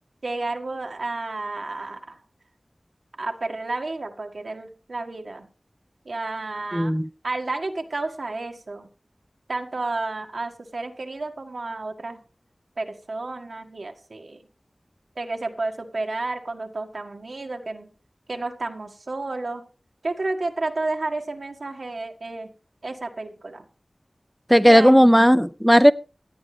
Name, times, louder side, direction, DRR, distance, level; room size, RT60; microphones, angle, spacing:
voice 1, 0.2-2.2 3.2-5.5 6.0-6.9 7.2-8.9 9.5-12.2 12.8-14.4 15.2-17.9 18.3-19.6 20.0-22.5 22.8-23.7 24.6-24.9, right 2 dB, 85° right, 1.7 m, -31 dB
voice 2, 6.7-7.1 24.5-25.9, equal, ahead, 0.5 m, -15 dB
17.0 x 10.5 x 3.4 m
wide cardioid pair, 55°, 0 cm